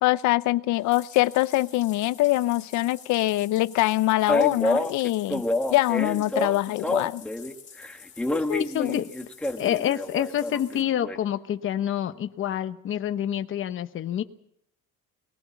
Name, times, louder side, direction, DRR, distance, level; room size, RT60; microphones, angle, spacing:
voice 1, 0.0-5.4 5.7-7.2 8.3-9.0, left 17 dB, 65° left, 16 dB, 0.7 m, -24 dB
Bathtub (filling or washing), 0.7-10.8, left 6 dB, 25° left, 3.8 m, -49 dB
Male speech man speaking, 4.3-7.5 7.8-11.2, left 1 dB, 5° left, 1.4 m, -28 dB
voice 2, 8.6-9.1 9.6-14.2, left 10 dB, 40° left, 9 dB, 1.0 m, -27 dB
20.0 x 18.5 x 7.1 m, 0.72 s
cardioid pair, 145°, 31 cm